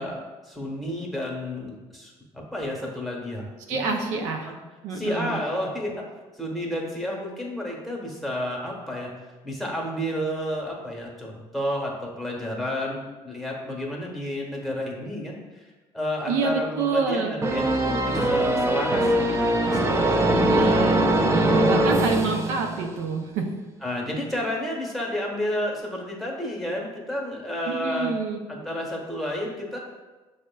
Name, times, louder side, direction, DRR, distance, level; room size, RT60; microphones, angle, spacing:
voice 1, 0.0-4.6 4.9-5.9 6.4-9.1 9.4-15.6 15.9-20.6 23.8-28.2 28.5-29.8, left 1 dB, ahead, -2 dB, 1.0 m, -31 dB
voice 2, 3.7-4.5 4.8-5.4 16.3-17.3 20.2-23.5 27.7-28.4, right 4 dB, 75° right, 2 dB, 0.5 m, -27 dB
sound 1, 17.4-23.1, right 1 dB, 20° right, 0.5 m, -22 dB
6.2 x 2.1 x 2.2 m, 1.2 s
supercardioid pair, 80°, 12 cm